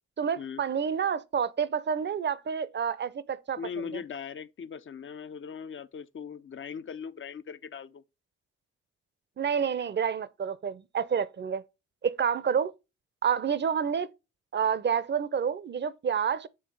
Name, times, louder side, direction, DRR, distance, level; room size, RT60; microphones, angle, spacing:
voice 1, 0.2-3.6 3.9-4.0 9.4-11.6 12.0-12.7 13.2-14.1 14.5-16.5, right 7 dB, 35° right, 0.7 m, -29 dB
voice 2, 3.6-8.0, left 6 dB, 40° left, 0.6 m, -39 dB
8.0 x 2.8 x 5.4 m
supercardioid pair, 50°, 31 cm